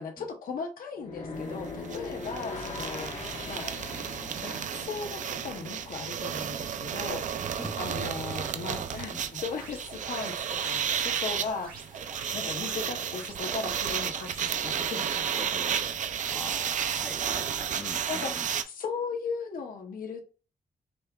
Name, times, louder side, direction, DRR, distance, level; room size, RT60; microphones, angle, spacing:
voice 1, 0.0-3.1 3.5-3.7 4.4-7.2 7.8-15.5 18.1-18.3 18.7-20.2, left 5 dB, 75° left, 3 dB, 0.8 m, -37 dB
sound 1, 1.0-6.1, left 3 dB, 50° left, 1.0 m, -40 dB
sound 2, 1.4-1.5 1.7-18.6, right 8 dB, 60° right, 0.4 m, -32 dB
voice 2, 7.6-9.2 15.4-16.0 16.3-18.5, left 1 dB, 5° left, 5 dB, 0.6 m, -44 dB
sound 3, 9.3-17.5, right 4 dB, 90° right, 1.5 m, -47 dB
5.1 x 3.4 x 2.3 m, 0.34 s
wide cardioid pair, 175°, 15 cm